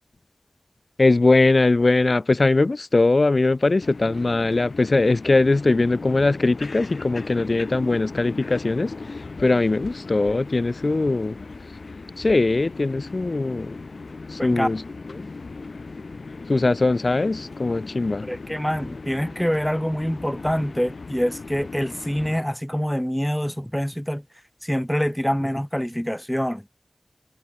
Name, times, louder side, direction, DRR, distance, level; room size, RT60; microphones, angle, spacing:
voice 1, 1.0-8.9 9.4-11.4 12.2-13.8 14.3-14.8 15.2-15.3 16.5-18.3, left 3 dB, 55° left, 0.7 m, -20 dB
sound 1, 3.8-22.4, left 3 dB, 75° left, 3.0 m, -37 dB
voice 2, 14.4-14.7 18.2-24.2 24.6-26.6, equal, 5° left, 1.2 m, -25 dB
wide cardioid pair, 70°, 0 cm